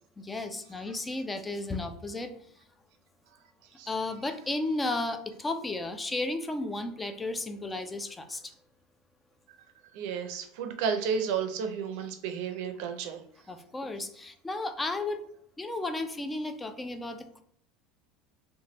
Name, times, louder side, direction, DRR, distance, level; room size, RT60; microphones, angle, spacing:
voice 1, 0.2-2.3 3.9-8.4 13.5-15.2 15.6-17.4, left 2 dB, 10° left, 8 dB, 0.4 m, -33 dB
voice 2, 9.9-13.2, right 6 dB, 65° right, 6 dB, 0.5 m, -32 dB
3.0 x 2.2 x 2.9 m, 0.69 s
supercardioid pair, 125°, 0 cm